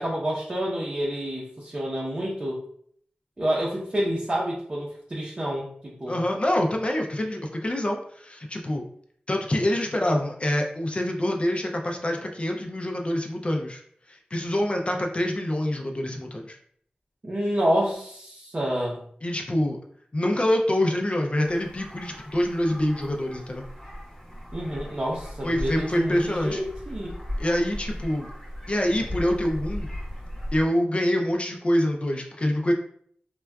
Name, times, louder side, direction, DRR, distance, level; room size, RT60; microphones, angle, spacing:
voice 1, 0.0-2.6 3.4-6.2 17.2-19.0 24.5-27.1, equal, 35° right, -5 dB, 0.6 m, -28 dB
voice 2, 6.1-8.8 9.3-13.8 14.1-16.6 19.2-19.8 20.1-23.7 25.4-26.6 27.4-28.3 28.7-29.9 30.5-32.7, left 1 dB, 35° left, 1 dB, 0.4 m, -26 dB
sound 1, 21.4-30.6, equal, 15° left, 0.8 m, -37 dB
3.5 x 2.2 x 2.2 m, 0.62 s
wide cardioid pair, 75°, 3 cm